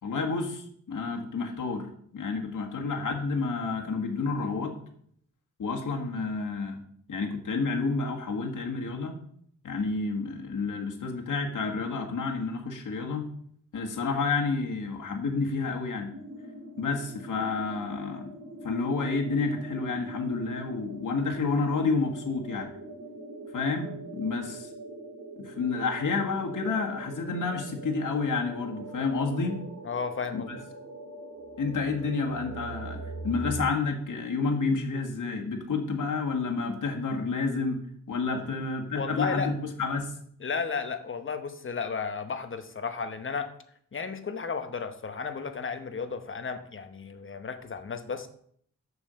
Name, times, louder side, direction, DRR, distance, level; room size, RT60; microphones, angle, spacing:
voice 1, 0.0-1.9 2.1-4.7 5.6-6.8 7.1-9.2 9.6-13.2 13.7-16.1 16.8-18.3 18.6-22.7 23.5-24.7 25.4-29.6 30.3-30.6 31.6-37.8 38.1-40.1, left 4 dB, 70° left, 1 dB, 1.7 m, -30 dB
sound 1, 16.1-33.7, right 2 dB, 75° right, 2.9 m, -42 dB
voice 2, 29.8-30.5 38.3-38.6 38.9-39.5 40.4-43.5 43.9-48.3, left 5 dB, 40° left, 8 dB, 0.9 m, -33 dB
6.9 x 6.5 x 6.8 m, 0.64 s
wide cardioid pair, 165°, 32 cm